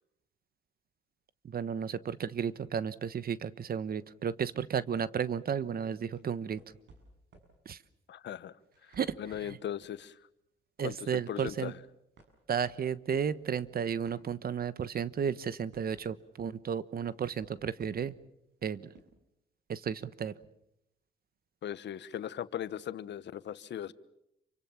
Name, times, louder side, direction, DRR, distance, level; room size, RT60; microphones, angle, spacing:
voice 1, 1.4-6.6 7.6-7.8 9.0-9.1 9.4-9.6 10.8-11.7 12.5-18.1 18.6-18.8 19.7-20.3, right 7 dB, 50° right, 16 dB, 1.2 m, -33 dB
sound 1, 5.9-7.6 8.6-10.0 10.4-10.7 11.1-11.8 12.2-14.8 15.1-16.3 17.0-18.2 18.9-19.0, right 2 dB, 65° right, 7.2 m, -60 dB
voice 2, 8.1-8.5 8.8-8.9 9.2-10.2 10.8-11.8 21.6-23.9, left 10 dB, 65° left, 16 dB, 1.2 m, -38 dB
28.5 x 25.0 x 7.2 m, 0.80 s
cardioid pair, 90°, 20 cm